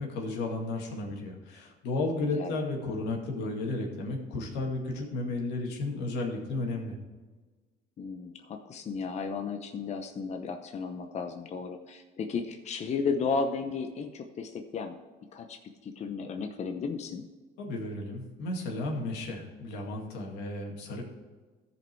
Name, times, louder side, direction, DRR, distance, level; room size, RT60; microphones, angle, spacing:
voice 1, 0.0-7.0 17.6-21.0, left 2 dB, 90° left, 1 dB, 2.2 m, -33 dB
voice 2, 8.0-15.0 15.3-17.3, left 5 dB, 40° left, 5 dB, 0.8 m, -34 dB
14.0 x 5.3 x 4.6 m, 1.3 s
cardioid pair, 110°, 17 cm